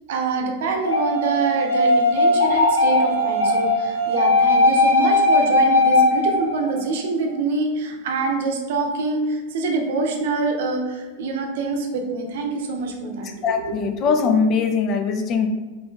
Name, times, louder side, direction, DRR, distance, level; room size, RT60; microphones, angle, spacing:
voice 1, 0.1-13.3 13.6-13.7, right 3 dB, 55° right, 3 dB, 0.7 m, -25 dB
sound 1, 0.8-6.8, left 2 dB, 85° left, 1.0 m, -18 dB
voice 2, 13.4-15.5, left 5 dB, 35° left, 6 dB, 0.5 m, -21 dB
4.0 x 3.3 x 3.7 m, 1.3 s
figure-of-eight pair, 90°, 0 cm